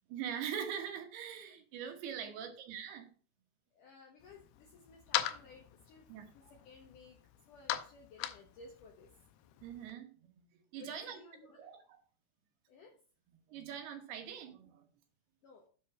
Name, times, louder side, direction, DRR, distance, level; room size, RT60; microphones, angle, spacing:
voice 1, 0.1-3.1 6.1-6.3 9.6-10.1 10.4-10.5 10.7-11.2 11.6-12.0 13.5-14.8, right 8 dB, 70° right, 5 dB, 3.1 m, -42 dB
voice 2, 3.7-7.2 7.5-9.1 10.7-11.7 12.7-12.9 15.4-15.7, left 3 dB, 65° left, 1 dB, 2.2 m, -57 dB
sound 1, 4.2-9.9, left 12 dB, 80° left, 2.3 m, -41 dB
10.0 x 4.7 x 5.6 m, 0.40 s
omnidirectional pair, 5.0 m